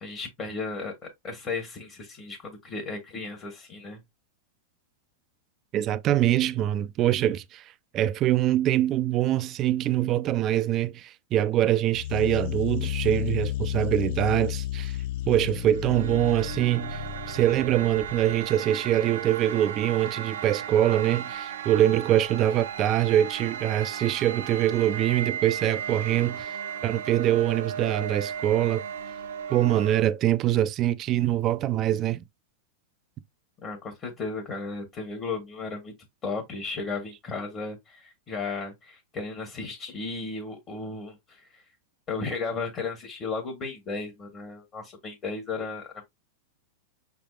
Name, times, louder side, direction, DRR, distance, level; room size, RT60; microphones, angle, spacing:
voice 1, 0.0-4.0 33.6-35.9 36.2-41.6 42.1-46.0, left 4 dB, 25° left, 1.2 m, -35 dB
voice 2, 5.7-7.6 7.9-15.0 15.3-17.0 17.3-26.5 26.8-28.8 29.5-32.2, right 12 dB, 30° right, 0.4 m, -24 dB
sound 1, 11.9-18.5, left 12 dB, 50° left, 0.4 m, -32 dB
sound 2, 15.4-30.0, right 8 dB, 80° right, 0.9 m, -36 dB
5.8 x 3.4 x 2.3 m
supercardioid pair, 150°, 0 cm